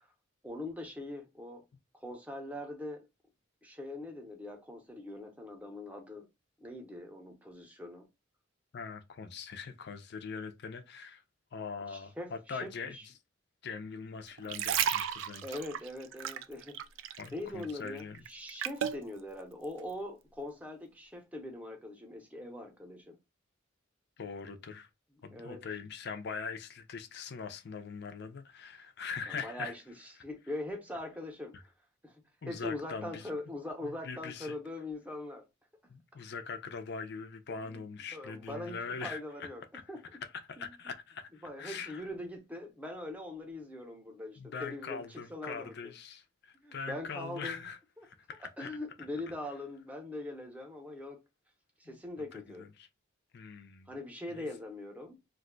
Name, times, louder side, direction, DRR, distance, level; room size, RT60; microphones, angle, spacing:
voice 1, 0.4-1.6 1.9-3.1 3.6-6.3 6.6-8.1 11.9-13.0 15.4-16.8 17.3-23.2 25.3-25.6 29.3-31.7 32.0-35.4 35.8-35.9 37.6-37.8 38.1-39.6 39.9-40.0 40.6-40.7 41.4-45.9 46.6-47.7 48.0-48.1 48.6-51.2 51.8-52.7 53.9-55.2, left 1 dB, 5° right, 0.7 m, -42 dB
voice 2, 8.7-11.2 11.5-13.0 13.6-15.6 17.2-18.2 24.2-24.9 25.2-29.7 31.5-31.6 32.4-33.3 33.8-34.5 35.9-39.5 39.7-39.8 40.5-42.0 44.4-47.8 48.0-48.7 51.8-52.0 52.3-52.9 53.3-53.9 54.3-54.5, left 5 dB, 55° left, 0.5 m, -42 dB
sound 1, 14.3-17.3 17.6-19.0 19.6-19.8, right 9 dB, 65° right, 0.3 m, -34 dB
2.5 x 2.2 x 3.7 m
head